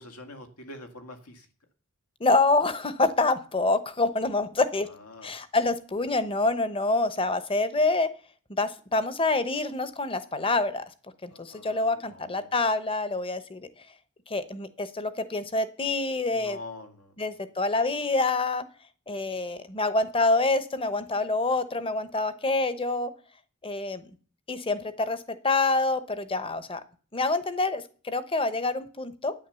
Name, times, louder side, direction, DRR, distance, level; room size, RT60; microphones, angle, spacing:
voice 1, 0.0-1.5 4.9-5.3 11.3-12.5 16.3-17.1, left 2 dB, 80° left, 7 dB, 2.1 m, -45 dB
voice 2, 2.2-4.9 5.2-8.1 8.5-10.8 11.2-13.7 14.3-16.6 17.2-18.6 19.1-23.1 23.6-24.1 24.5-26.8 27.1-29.3, left 3 dB, 25° left, 13 dB, 0.9 m, -26 dB
10.0 x 9.3 x 6.9 m, 0.40 s
head